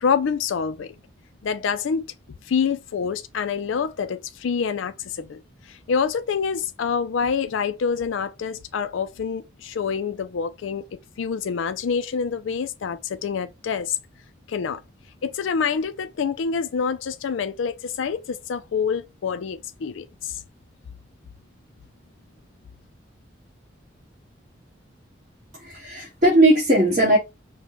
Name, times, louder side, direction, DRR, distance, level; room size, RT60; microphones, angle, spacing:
voice 1, 0.0-0.9 1.4-2.1 2.4-5.4 5.7-10.8 11.2-14.0 14.5-14.8 15.2-20.4, left 6 dB, 85° left, 0.4 m, -26 dB
voice 2, 25.6-27.2, right 1 dB, 40° right, 1.5 m, -18 dB
5.0 x 2.2 x 3.0 m
head